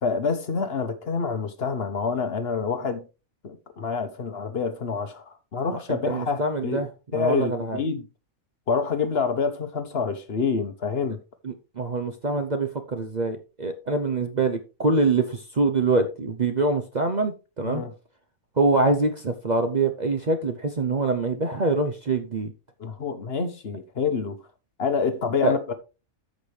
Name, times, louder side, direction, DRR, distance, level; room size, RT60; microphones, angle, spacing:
voice 1, 0.0-3.0 3.4-6.8 7.1-8.1 8.7-11.2 17.6-17.9 22.8-24.4 24.8-25.7, left 5 dB, 50° left, 1.1 m, -27 dB
voice 2, 5.9-7.8 11.4-17.8 18.6-22.5 25.4-25.6, right 3 dB, 40° right, 0.7 m, -25 dB
14.0 x 5.2 x 3.3 m
omnidirectional pair, 1.4 m